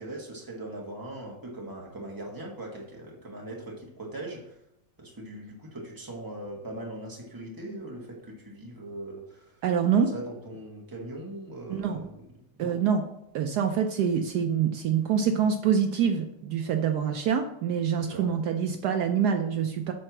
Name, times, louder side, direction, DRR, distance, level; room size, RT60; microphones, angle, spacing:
voice 1, 0.0-4.6 5.0-9.6 10.1-12.2 12.6-12.8 18.0-18.3, right 1 dB, 10° right, 0 dB, 1.1 m, -40 dB
voice 2, 9.6-10.1 11.7-12.1 12.6-13.0 13.3-19.9, right 7 dB, 90° right, 5 dB, 0.8 m, -26 dB
7.8 x 4.4 x 6.0 m, 0.81 s
omnidirectional pair, 2.4 m